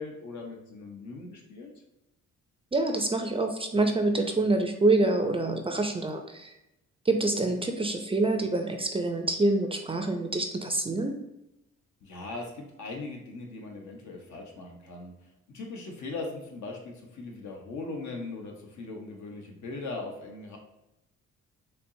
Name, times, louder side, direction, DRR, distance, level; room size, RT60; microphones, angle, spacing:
voice 1, 0.0-1.7 12.0-15.1 15.5-20.6, left 3 dB, 75° left, 1 dB, 0.9 m, -39 dB
voice 2, 2.7-6.5 7.1-11.2, right 2 dB, 20° right, 5 dB, 0.4 m, -26 dB
4.4 x 2.9 x 2.6 m, 0.89 s
cardioid pair, 90°, 30 cm